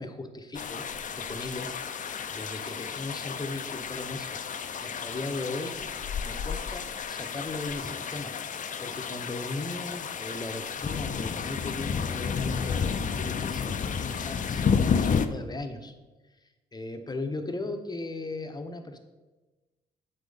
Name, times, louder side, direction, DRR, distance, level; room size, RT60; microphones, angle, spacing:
voice 1, 0.0-1.8 2.3-4.4 4.8-5.8 6.2-8.3 8.8-15.9 16.7-19.0, left 2 dB, 20° left, 6 dB, 0.9 m, -37 dB
sound 1, 0.5-15.3, left 6 dB, 40° left, 0.5 m, -31 dB
7.4 x 5.0 x 4.0 m, 1.2 s
supercardioid pair, 70°, 20 cm